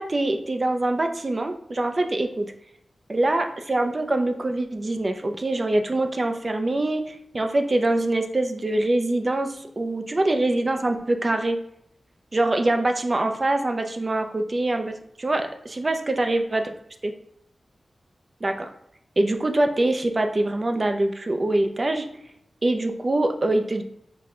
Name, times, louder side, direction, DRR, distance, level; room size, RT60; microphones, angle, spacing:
voice 1, 0.0-2.5 3.1-11.6 12.3-16.7 17.0-17.1 18.4-18.7 19.2-22.1 22.6-23.8, right 2 dB, 35° right, 6 dB, 0.4 m, -24 dB
5.9 x 2.2 x 3.6 m, 0.76 s
wide cardioid pair, 125°, 0 cm